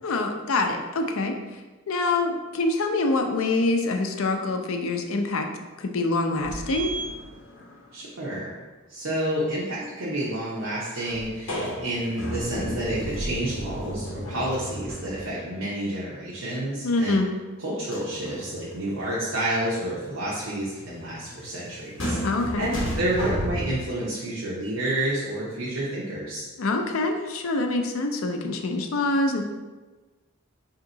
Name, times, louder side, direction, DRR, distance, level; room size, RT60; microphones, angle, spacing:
voice 1, 0.0-1.6 1.9-5.5 5.8-6.9 16.8-17.3 22.2-22.7 26.6-29.4, left 2 dB, 85° left, 4 dB, 0.5 m, -25 dB
sound 1, 6.4-7.9 11.0-15.6 17.9-23.8, equal, 65° left, 0.9 m, -34 dB
voice 2, 7.9-8.5 8.9-17.2 17.6-22.2 22.6-26.5, right 1 dB, 80° right, -7 dB, 0.8 m, -29 dB
3.6 x 2.8 x 3.9 m, 1.2 s
head